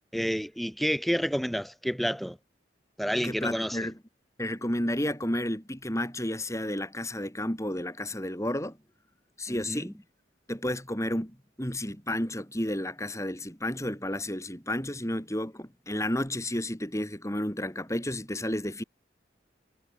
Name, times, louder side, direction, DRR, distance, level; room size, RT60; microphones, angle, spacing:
voice 1, 0.1-2.4 3.0-3.8 9.5-9.9, equal, ahead, 4.0 m, -29 dB
voice 2, 3.2-3.9 4.4-8.8 9.4-9.9 10.5-18.8, left 1 dB, 15° left, 6.0 m, -31 dB
head